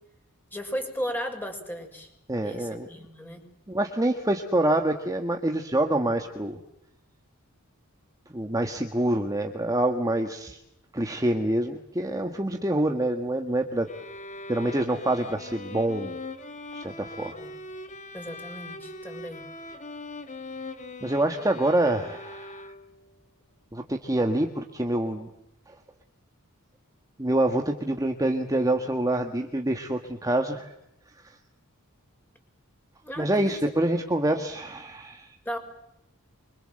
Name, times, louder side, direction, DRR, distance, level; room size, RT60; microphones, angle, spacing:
voice 1, 0.5-2.1 2.4-3.4 17.3-17.5 18.1-19.4 33.0-33.7 35.4-35.6, equal, 10° left, 4 dB, 5.9 m, -35 dB
voice 2, 2.3-2.9 3.7-6.6 8.3-10.6 10.9-13.9 14.5-16.2 16.7-17.4 21.0-22.7 23.7-25.3 27.2-30.7 31.2-31.4 33.2-35.3, right 1 dB, 15° right, 4 dB, 1.6 m, -26 dB
sound 1, 13.9-23.1, left 2 dB, 35° left, 2.1 m, -41 dB
25.5 x 25.5 x 7.8 m, 0.83 s
head